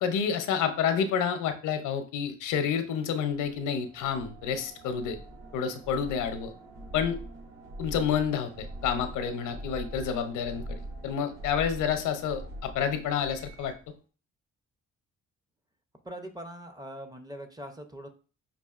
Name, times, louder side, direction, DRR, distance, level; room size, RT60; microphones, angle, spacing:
voice 1, 0.0-5.2 5.5-6.5 6.9-7.2 7.8-10.8 11.0-13.7, left 7 dB, 85° left, 8 dB, 0.6 m, -29 dB
sound 1, 3.3-13.9, right 1 dB, 60° right, 1.0 m, -43 dB
voice 2, 16.0-18.1, equal, 15° right, 6 dB, 0.5 m, -42 dB
5.4 x 2.5 x 2.4 m, 0.38 s
cardioid pair, 90°, 30 cm